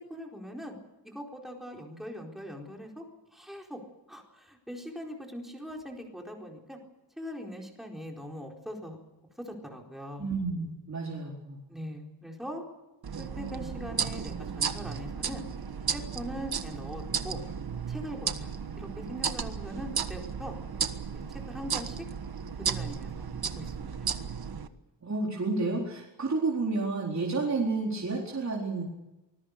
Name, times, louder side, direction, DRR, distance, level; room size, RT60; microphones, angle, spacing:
voice 1, 0.1-0.8 1.0-3.0 3.3-3.8 4.1-6.8 7.2-9.0 9.4-10.3 11.7-12.6 13.2-15.4 15.9-17.4 17.9-18.5 18.8-20.6 21.1-22.0 22.6-23.3 23.6-23.9, equal, ahead, 0 dB, 4.4 m, -41 dB
voice 2, 10.2-11.6 25.0-28.8, right 3 dB, 35° right, -3 dB, 4.3 m, -30 dB
sound 1, 13.0-24.7, right 6 dB, 55° right, 1.5 m, -34 dB
25.0 x 21.0 x 6.8 m, 0.97 s
wide cardioid pair, 175°, 45 cm